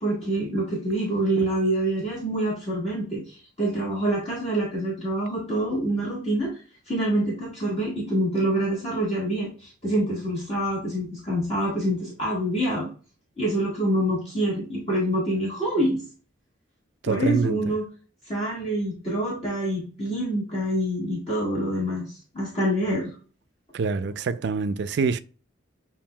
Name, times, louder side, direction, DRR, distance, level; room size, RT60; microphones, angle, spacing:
voice 1, 0.0-6.5 6.9-12.9 13.4-16.0 17.1-17.8 18.3-23.1, right 1 dB, 30° left, 1.6 m, -26 dB
voice 2, 17.0-17.6 23.7-25.2, right 5 dB, 55° right, 0.3 m, -25 dB
7.1 x 2.6 x 2.2 m
head